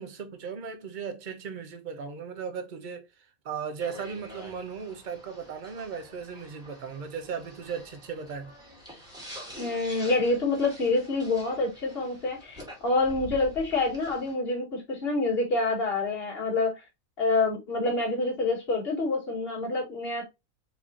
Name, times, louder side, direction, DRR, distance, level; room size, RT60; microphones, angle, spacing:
voice 1, 0.0-3.1 3.4-8.5, right 6 dB, 40° right, 0.8 m, -37 dB
sound 1, 3.8-14.3, left 1 dB, 5° right, 2.4 m, -46 dB
voice 2, 9.6-16.8 17.2-20.3, left 3 dB, 45° left, 2.1 m, -27 dB
4.7 x 3.6 x 2.8 m
omnidirectional pair, 1.5 m